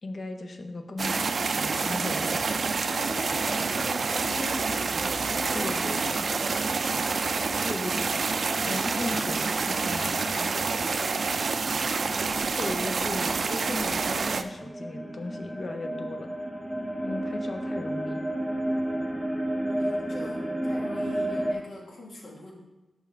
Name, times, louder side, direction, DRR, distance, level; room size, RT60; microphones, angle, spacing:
voice 1, 0.0-2.8 5.5-6.3 7.6-8.4 8.7-10.6 11.8-16.3 17.0-18.2, left 2 dB, 45° left, 5 dB, 0.7 m, -37 dB
sound 1, 1.0-14.4, right 4 dB, 60° right, 0.3 m, -28 dB
voice 2, 2.8-7.8 10.9-11.2 19.7-22.5, left 1 dB, 80° left, -2 dB, 1.6 m, -41 dB
sound 2, 13.6-21.5, right 1 dB, ahead, 0.7 m, -32 dB
7.0 x 5.8 x 3.4 m, 1.1 s
wide cardioid pair, 150°, 0 cm